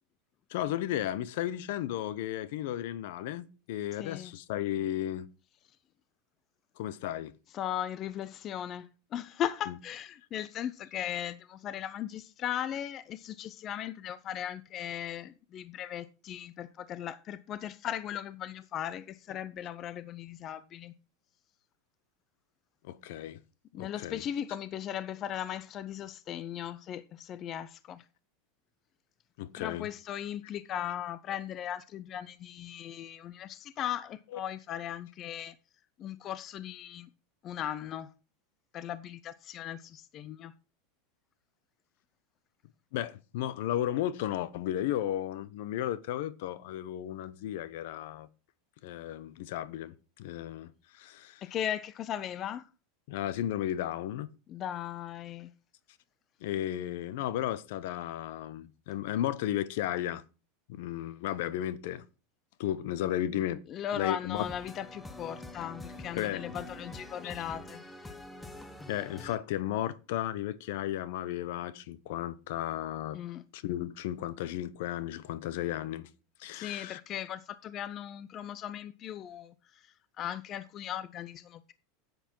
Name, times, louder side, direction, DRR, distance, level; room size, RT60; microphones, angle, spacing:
voice 1, 0.5-5.3 6.8-7.3 9.7-9.8 22.8-23.4 23.7-24.2 29.4-29.9 34.3-34.4 42.9-48.3 48.8-51.4 53.1-54.3 56.4-60.2 60.7-62.0 62.6-63.6 64.0-64.5 66.1-66.4 67.2-67.3 68.9-73.2 73.5-76.1 76.4-77.0, left 12 dB, 65° left, 0.8 m, -34 dB
voice 2, 4.0-4.4 7.5-20.9 23.7-28.0 29.6-35.5 36.0-37.1 37.4-38.1 38.7-40.5 51.4-52.7 54.5-55.5 63.7-67.8 73.1-73.4 76.5-81.7, left 10 dB, 30° left, 0.6 m, -38 dB
sound 1, 64.4-69.4, left 2 dB, 10° left, 1.0 m, -46 dB
10.5 x 7.9 x 4.5 m
supercardioid pair, 155°, 0 cm